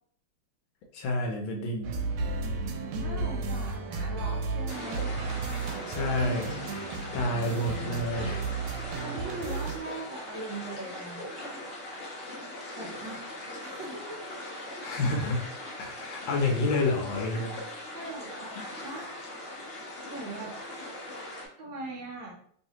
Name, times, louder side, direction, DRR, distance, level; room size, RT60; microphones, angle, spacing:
voice 1, 0.9-2.0 5.9-6.6 7.1-8.5 14.8-15.4 15.8-17.8, left 2 dB, 75° left, 1 dB, 1.3 m, -29 dB
sound 1, 1.8-9.8, right 4 dB, 85° right, 1.5 m, -33 dB
voice 2, 2.6-6.1 9.0-11.4 12.8-13.3 13.6-14.2 17.9-18.6 18.8-19.2 20.0-20.6 21.6-22.3, right 2 dB, 70° right, -1 dB, 1.3 m, -40 dB
sound 2, 4.7-21.5, left 1 dB, 50° left, 0.7 m, -40 dB
3.1 x 3.1 x 2.8 m, 0.62 s
omnidirectional pair, 2.3 m